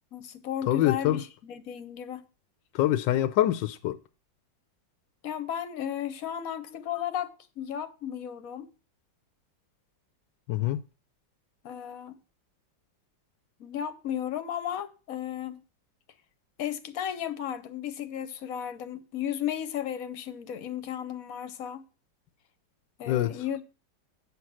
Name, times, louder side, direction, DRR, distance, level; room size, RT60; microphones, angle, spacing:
voice 1, 0.0-2.3 5.2-8.7 11.6-12.1 13.6-15.6 16.6-21.8 23.0-23.6, left 10 dB, 55° left, 1.3 m, -34 dB
voice 2, 0.7-1.2 2.7-4.0 10.5-10.8 23.1-23.4, left 13 dB, 85° left, 1.3 m, -25 dB
8.7 x 5.9 x 6.2 m
omnidirectional pair, 1.9 m